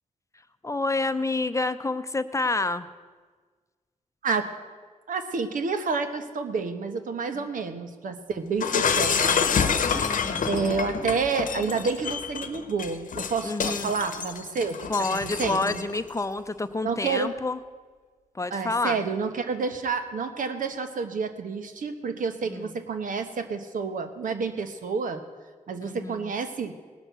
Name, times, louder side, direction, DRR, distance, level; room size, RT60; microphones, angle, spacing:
voice 1, 0.6-2.9 7.3-7.5 9.8-10.7 13.4-13.9 14.9-17.6 18.3-19.0 22.5-22.7 25.9-26.3, left 3 dB, 20° left, 11 dB, 0.6 m, -29 dB
voice 2, 5.1-9.5 9.9-14.8 15.1-15.8 16.8-17.4 18.5-25.2 25.7-26.7, right 4 dB, 80° right, 8 dB, 1.1 m, -29 dB
Shatter, 8.6-16.0, left 6 dB, 80° left, 0.9 m, -27 dB
18.5 x 6.2 x 8.1 m, 1.5 s
cardioid pair, 75°, 14 cm